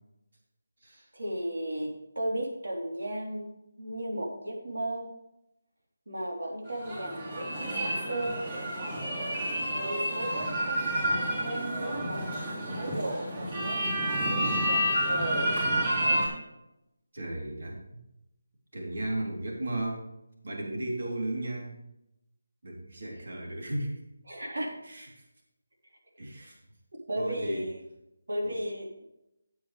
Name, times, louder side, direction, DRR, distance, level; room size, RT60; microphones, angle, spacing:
voice 1, 1.1-5.1 6.1-8.5 9.7-12.3 12.6-14.0 14.3-15.6 15.9-16.3 24.3-24.7 27.1-27.8 28.3-29.1, right 1 dB, 90° right, -2 dB, 3.7 m, -35 dB
sound 1, 6.7-16.3, equal, 25° right, 3.6 m, -30 dB
voice 2, 17.1-18.0 18.7-20.1 20.4-21.8 22.6-23.9 24.8-25.2 26.2-26.6 27.2-27.7 28.4-28.5, right 1 dB, 55° right, -1 dB, 3.5 m, -35 dB
12.0 x 8.5 x 3.4 m, 0.86 s
figure-of-eight pair, 175°, 0 cm